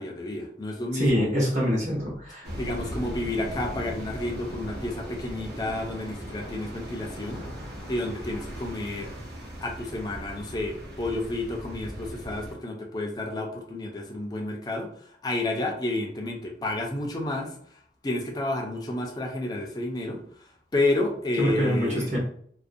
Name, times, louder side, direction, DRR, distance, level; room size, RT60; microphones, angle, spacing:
voice 1, 0.0-1.3 2.5-7.5 7.9-9.1 9.6-22.2, left 2 dB, 20° left, 2 dB, 0.3 m, -31 dB
voice 2, 0.9-2.5 21.4-22.2, equal, 40° right, -5 dB, 0.8 m, -25 dB
sound 1, 2.4-12.5, equal, 80° right, 0.8 m, -38 dB
2.4 x 2.1 x 2.5 m, 0.63 s
head